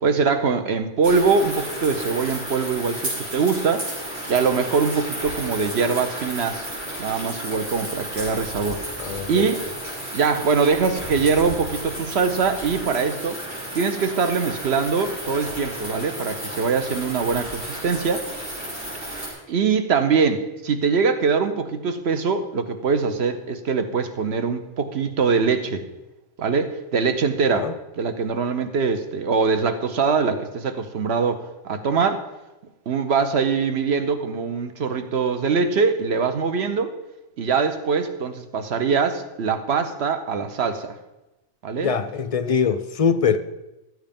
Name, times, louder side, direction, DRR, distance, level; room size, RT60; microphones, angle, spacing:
voice 1, 0.0-3.9 4.3-6.7 7.0-8.8 9.3-9.6 10.1-13.4 13.7-18.2 19.5-25.8 26.4-27.7 28.0-32.2 32.9-36.9 37.4-40.9 41.6-41.9, right 5 dB, 65° right, 8 dB, 1.2 m, -23 dB
sound 1, 1.0-19.3, right 1 dB, 90° right, 4.8 m, -33 dB
voice 2, 9.0-9.4 27.5-27.7 41.8-43.4, left 6 dB, 45° left, 11 dB, 0.4 m, -22 dB
13.0 x 7.9 x 5.3 m, 1.0 s
omnidirectional pair, 1.2 m